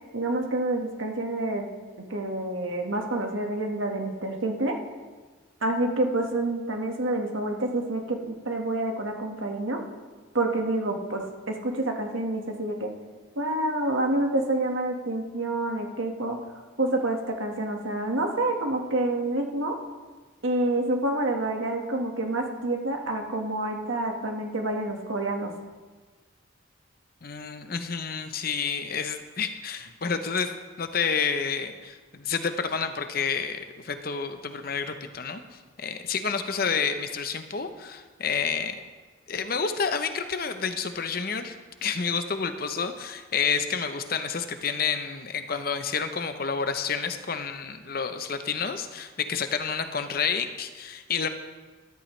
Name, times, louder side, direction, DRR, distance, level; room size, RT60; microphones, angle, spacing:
voice 1, 0.1-1.7 2.1-4.7 5.6-9.8 10.3-11.2 11.5-12.9 13.3-16.4 16.8-19.8 20.4-25.5, right 2 dB, 80° right, 2 dB, 1.7 m, -28 dB
voice 2, 27.2-30.5 30.8-35.4 35.8-38.8 39.3-41.5 41.8-51.3, left 6 dB, 50° left, 8 dB, 0.8 m, -29 dB
14.0 x 13.0 x 3.3 m, 1.4 s
head